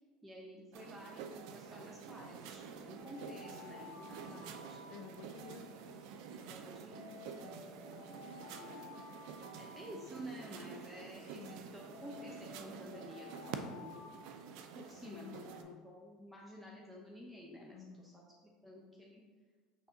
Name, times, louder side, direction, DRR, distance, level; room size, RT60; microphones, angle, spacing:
voice 1, 0.2-4.3 4.7-4.8 6.3-7.4 8.6-9.0 9.6-14.1 14.7-18.3 18.6-19.2, equal, 10° right, -2 dB, 0.7 m, -51 dB
sound 1, 0.7-15.6, right 6 dB, 65° right, 0.3 m, -49 dB
Alarm, 3.0-5.6 6.9-10.6 11.9-15.1, left 5 dB, 80° left, 0.8 m, -55 dB
voice 2, 4.3-6.1 7.4-7.9 11.2-11.7 14.8-15.8 17.7-18.2, left 7 dB, 60° left, 8 dB, 0.3 m, -54 dB
5.5 x 3.5 x 2.6 m, 1.5 s
hypercardioid pair, 80°, 0 cm